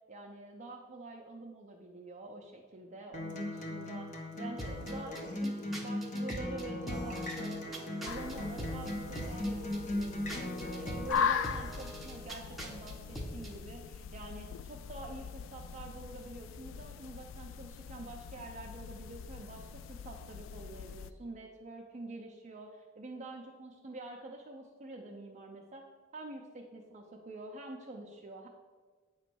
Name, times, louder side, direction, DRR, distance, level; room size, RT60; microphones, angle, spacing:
voice 1, 0.1-7.7 8.0-25.9 26.1-28.5, right 2 dB, 40° right, 0 dB, 0.5 m, -47 dB
Acoustic guitar, 3.1-11.1, left 1 dB, 40° left, 0.9 m, -38 dB
sound 1, 4.6-13.6, equal, ahead, 0.8 m, -44 dB
sound 2, 8.0-21.1, left 6 dB, 75° left, 0.3 m, -40 dB
8.6 x 3.0 x 6.0 m, 1.5 s
head